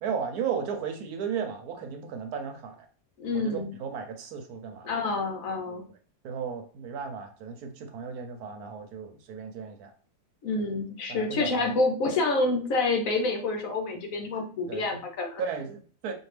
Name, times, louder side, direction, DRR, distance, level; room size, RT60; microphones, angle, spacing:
voice 1, 0.0-2.9 3.3-4.9 5.7-5.8 6.2-9.9 10.6-10.7 11.1-11.8 14.7-14.8 15.4-16.1, right 6 dB, 75° right, 5 dB, 1.1 m, -35 dB
voice 2, 3.2-3.7 4.8-5.8 10.4-15.4, left 3 dB, 65° left, 2 dB, 1.0 m, -28 dB
4.5 x 2.6 x 3.2 m, 0.41 s
omnidirectional pair, 1.7 m